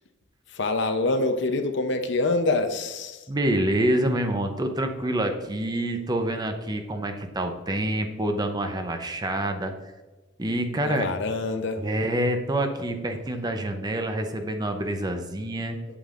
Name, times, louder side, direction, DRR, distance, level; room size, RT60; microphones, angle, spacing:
voice 1, 0.5-3.3 10.8-11.8, left 2 dB, 65° left, 7 dB, 0.7 m, -26 dB
voice 2, 3.3-9.7 10.4-11.0 11.8-15.8, right 1 dB, 20° right, 6 dB, 0.7 m, -27 dB
8.4 x 7.4 x 2.5 m, 1.2 s
head